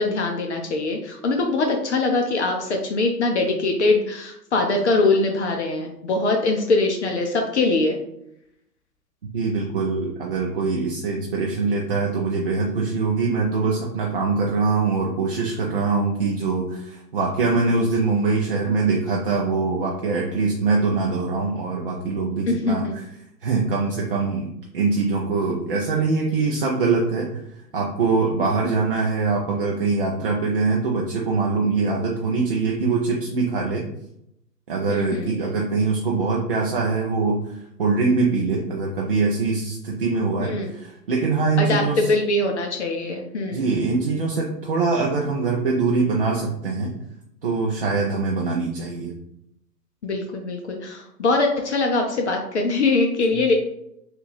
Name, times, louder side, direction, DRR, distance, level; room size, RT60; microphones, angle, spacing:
voice 1, 0.0-8.0 22.5-22.9 34.9-35.4 40.4-40.7 41.6-43.7 50.0-53.5, left 3 dB, 45° left, 3 dB, 0.5 m, -22 dB
voice 2, 9.3-23.0 23.4-24.5 24.7-27.4 27.7-33.8 34.7-42.1 43.5-46.9 47.4-49.1, right 4 dB, 40° right, -2 dB, 0.4 m, -23 dB
3.5 x 2.4 x 3.2 m, 0.77 s
figure-of-eight pair, 120°, 50 cm